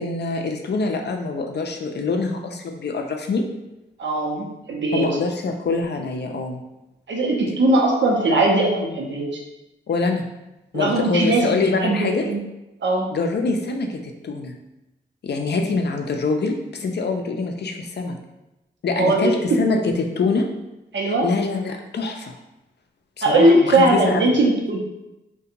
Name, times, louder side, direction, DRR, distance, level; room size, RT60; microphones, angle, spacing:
voice 1, 0.0-3.4 4.9-6.6 9.9-10.2 10.7-12.3 13.1-14.5 15.2-18.2 18.8-20.5 21.2-22.4 23.2-24.2, left 3 dB, 60° left, 3 dB, 0.4 m, -24 dB
voice 2, 4.0-5.1 7.1-9.3 10.7-12.4 12.8-13.1 19.0-19.4 20.9-21.3 23.2-24.8, right 2 dB, 70° right, -2 dB, 0.7 m, -19 dB
2.4 x 2.2 x 2.8 m, 0.95 s
cardioid pair, 45°, 20 cm